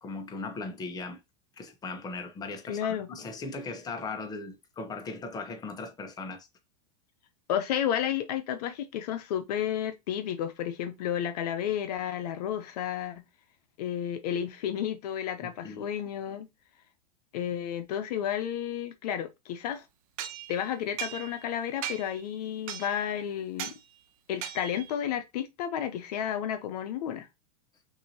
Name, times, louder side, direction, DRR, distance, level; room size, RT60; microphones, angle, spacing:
voice 1, 0.0-1.2 1.6-6.5 15.4-15.9, left 3 dB, 20° left, 1.0 m, -38 dB
voice 2, 2.7-3.1 7.5-13.2 13.8-16.5 17.3-19.8 20.5-23.7 24.3-27.3, left 9 dB, 70° left, 0.7 m, -32 dB
sound 1, 20.2-21.5 21.8-22.2 22.7-23.1 23.6-23.8 24.4-24.9, right 10 dB, 60° right, 0.8 m, -38 dB
6.0 x 2.7 x 2.9 m
supercardioid pair, 130°, 21 cm